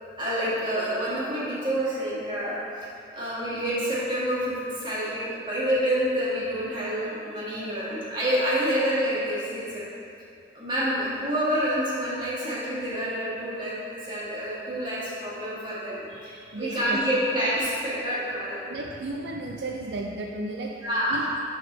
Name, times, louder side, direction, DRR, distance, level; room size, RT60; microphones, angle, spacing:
voice 1, 0.2-2.5 2.8-2.9 3.1-9.9 10.5-18.6 20.8-21.2, equal, 25° right, -9 dB, 1.7 m, -28 dB
voice 2, 16.5-17.1 18.7-20.8 21.1-21.3, right 2 dB, 65° right, 0 dB, 0.4 m, -33 dB
10.5 x 3.6 x 3.9 m, 2.5 s
head